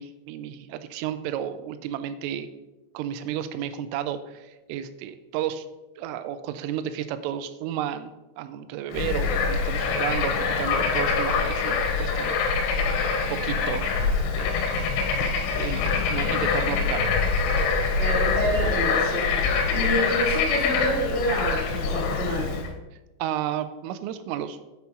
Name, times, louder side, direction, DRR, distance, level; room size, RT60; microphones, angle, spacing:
voice 1, 0.0-2.5 2.9-5.7 6.0-12.4 13.3-14.6 15.5-17.2 23.2-24.6, right 10 dB, 85° right, 12 dB, 3.1 m, -32 dB
Bird / Frog, 8.9-22.7, left 5 dB, 85° left, 3.4 m, -24 dB
voice 2, 18.0-22.5, equal, 60° left, -6 dB, 0.7 m, -28 dB
7.2 x 6.1 x 5.5 m, 1.1 s
omnidirectional pair, 5.6 m